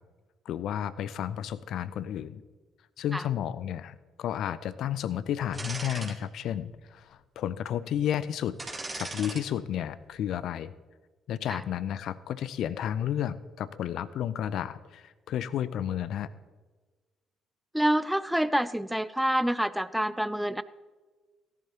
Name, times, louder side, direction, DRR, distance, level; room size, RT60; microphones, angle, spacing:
voice 1, 0.5-2.4 3.0-8.6 9.0-10.7 11.3-16.3, left 10 dB, 60° left, 16 dB, 0.5 m, -32 dB
sound 1, 5.5-6.1 6.6-6.7 8.6-9.4 9.8-10.0, right 2 dB, 20° right, 2.2 m, -38 dB
voice 2, 17.7-20.6, right 1 dB, 5° right, 15 dB, 0.5 m, -27 dB
17.5 x 11.0 x 2.9 m, 1.3 s
figure-of-eight pair, 45°, 0 cm